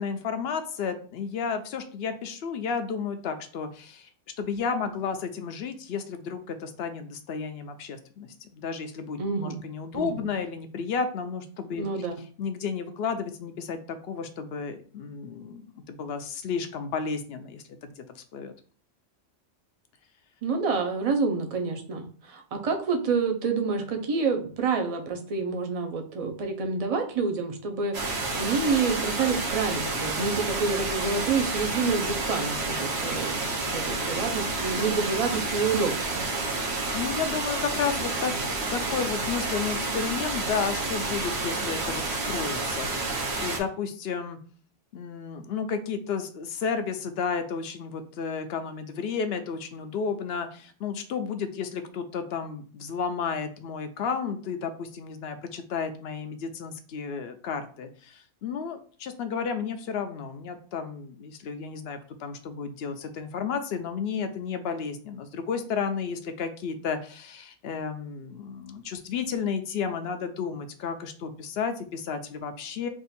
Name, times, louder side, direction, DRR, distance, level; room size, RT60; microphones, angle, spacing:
voice 1, 0.0-4.1 4.4-11.8 12.4-18.5 36.6-44.4 44.9-72.9, left 6 dB, 65° left, 8 dB, 0.7 m, -32 dB
voice 2, 9.2-9.6 9.9-10.3 11.8-12.2 20.4-36.3, right 4 dB, 40° right, 4 dB, 0.6 m, -28 dB
sound 1, 27.9-43.6, right 3 dB, 60° right, 1.1 m, -30 dB
3.6 x 2.5 x 4.1 m, 0.42 s
omnidirectional pair, 1.3 m